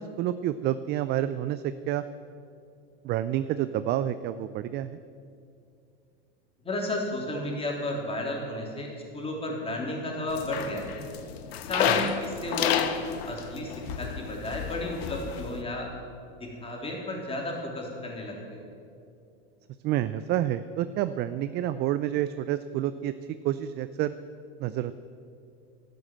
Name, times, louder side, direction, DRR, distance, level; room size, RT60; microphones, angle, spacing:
voice 1, 0.0-2.0 3.0-5.0 11.9-12.1 19.8-23.1 23.4-24.1 24.6-24.9, right 12 dB, 35° right, 13 dB, 0.4 m, -29 dB
voice 2, 6.6-11.0 11.7-12.7 13.3-15.9 16.4-18.6, left 1 dB, 15° left, -1 dB, 3.6 m, -33 dB
sound 1, 10.3-15.6, left 8 dB, 70° left, 1.2 m, -31 dB
12.0 x 11.5 x 7.5 m, 2.5 s
hypercardioid pair, 115°, 32 cm